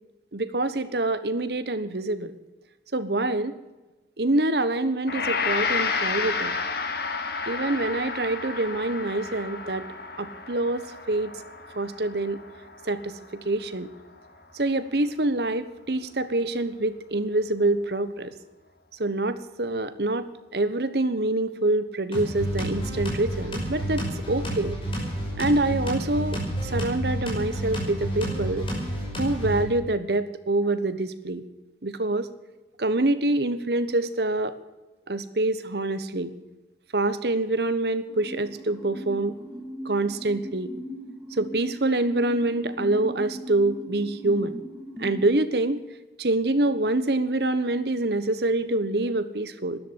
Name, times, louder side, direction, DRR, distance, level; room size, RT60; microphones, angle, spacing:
voice 1, 0.3-2.3 2.9-3.5 4.2-6.6 7.5-9.8 10.2-11.3 11.8-12.4 12.9-13.1 13.4-13.9 14.5-18.3 19.0-24.8 25.4-28.7 29.2-31.4 31.8-32.3 32.8-34.5 35.1-36.3 36.9-39.3 39.8-40.7 41.4-44.6 45.0-45.8 46.2-49.8, right 2 dB, 65° right, 12 dB, 1.2 m, -26 dB
Gong, 5.1-14.3, left 4 dB, 60° left, 1.8 m, -31 dB
sound 1, 22.1-29.6, right 1 dB, 30° left, 5.6 m, -30 dB
sound 2, 38.1-45.3, equal, 10° right, 2.9 m, -39 dB
13.0 x 11.0 x 9.9 m, 1.1 s
head